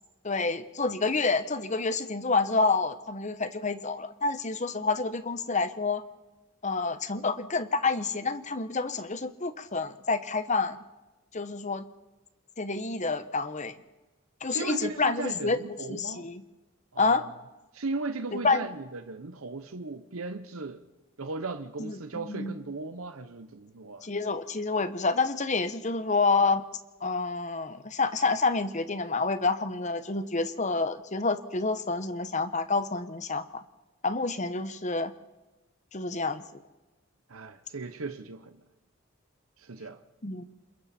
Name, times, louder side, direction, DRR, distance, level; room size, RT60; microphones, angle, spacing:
voice 1, 0.2-6.0 6.6-10.8 11.3-11.9 12.6-13.7 14.4-16.4 17.0-17.2 18.3-18.7 21.8-22.5 24.0-26.6 27.0-33.6 34.0-35.1 35.9-36.6 40.2-40.4, left 3 dB, 35° left, 1.0 m, -28 dB
voice 2, 14.5-16.2 16.9-17.3 17.7-20.8 21.2-24.1 37.3-38.6 39.6-40.0, right 3 dB, 85° right, 1.0 m, -37 dB
27.5 x 22.0 x 4.4 m
head